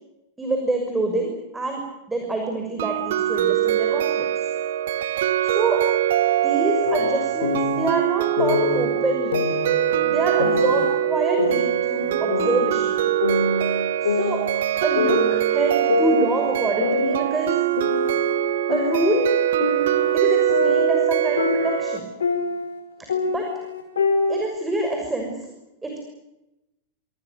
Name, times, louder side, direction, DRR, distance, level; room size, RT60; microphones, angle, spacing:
voice 1, 0.4-1.8 2.1-4.3 5.5-5.8 6.4-9.4 10.0-13.0 14.0-14.4 14.8-17.5 18.7-19.3 20.1-22.1 23.0-23.4 24.3-25.3 25.8-26.0, right 2 dB, 10° right, 3 dB, 6.2 m, -26 dB
sound 1, 2.8-22.0, right 12 dB, 55° right, 1.6 m, -23 dB
sound 2, 6.8-7.9 8.4-8.9 9.3-10.9 11.4-12.9 13.2-14.7 15.0-15.5 15.9-18.3 18.7-22.8 23.1-24.4, left 3 dB, 70° left, 5.6 m, -26 dB
27.5 x 26.5 x 6.9 m, 0.93 s
figure-of-eight pair, 90°, 0 cm